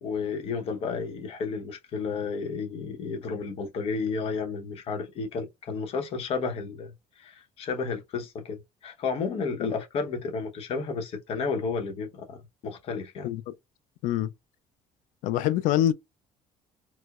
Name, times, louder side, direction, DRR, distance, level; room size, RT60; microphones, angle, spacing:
voice 1, 0.0-13.3, left 5 dB, 45° left, 0.8 m, -32 dB
voice 2, 13.2-13.5 14.0-14.3 15.2-15.9, left 12 dB, 70° left, 0.4 m, -25 dB
4.6 x 2.0 x 2.3 m
cardioid pair, 180°, 14 cm